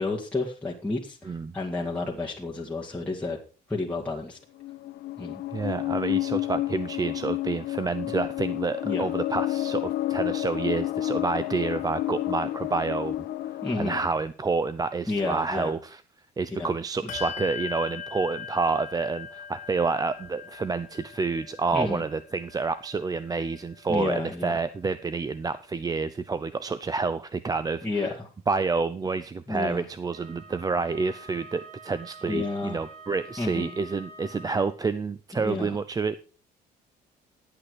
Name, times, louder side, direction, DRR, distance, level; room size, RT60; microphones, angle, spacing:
voice 1, 0.0-3.4 3.7-4.4 5.2-5.4 8.8-9.1 13.6-14.0 15.1-15.7 16.6-16.7 21.7-22.0 23.9-24.6 27.8-28.3 29.5-29.9 32.3-32.8 33.4-33.7 35.4-35.8, left 3 dB, 10° left, -4 dB, 2.2 m, -30 dB
sound 1, 4.6-14.1, left 15 dB, 80° left, 1.0 m, -30 dB
voice 2, 5.5-13.1 13.8-16.0 16.4-28.1 28.5-36.2, right 4 dB, 20° right, 14 dB, 0.6 m, -29 dB
Bell, 17.1-27.1, left 7 dB, 45° left, 2.3 m, -42 dB
Wind instrument woodwind instrument, 30.1-34.8, right 2 dB, 80° right, 4.3 m, -47 dB
12.0 x 8.7 x 4.9 m, 0.36 s
cardioid pair, 110°, 17 cm